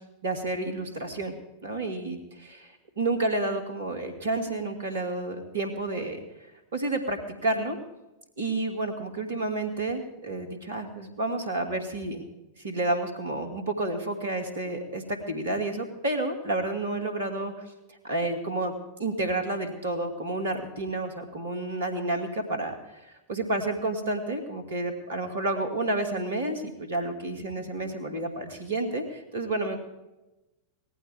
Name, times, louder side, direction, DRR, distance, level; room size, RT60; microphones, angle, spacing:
voice 1, 0.2-1.3 1.6-6.2 6.7-7.8 8.4-12.2 12.6-17.7 18.0-18.7 19.0-23.0 23.3-29.8, right 2 dB, 65° right, 6 dB, 2.5 m, -30 dB
18.5 x 14.5 x 3.7 m, 0.97 s
figure-of-eight pair, 90°, 0 cm